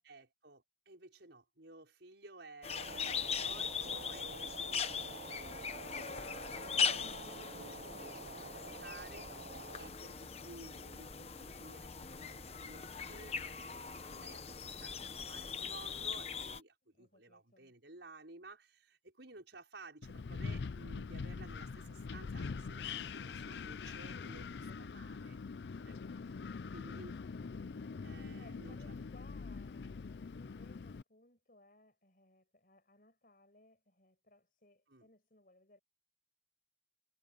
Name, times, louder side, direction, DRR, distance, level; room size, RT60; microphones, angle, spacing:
voice 1, 0.0-25.4 25.8-26.0 26.7-27.1 28.0-28.9 34.9-35.1, right 2 dB, 80° right, 5.4 m, -55 dB
sound 1, 2.6-16.6, left 6 dB, 35° left, 1.0 m, -40 dB
sound 2, 2.7-9.9, right 4 dB, 55° right, 0.7 m, -49 dB
voice 2, 16.8-17.7 28.4-35.8, left 2 dB, 50° left, 6.1 m, -65 dB
Wind, 20.0-31.0, left 5 dB, 70° left, 0.5 m, -43 dB
head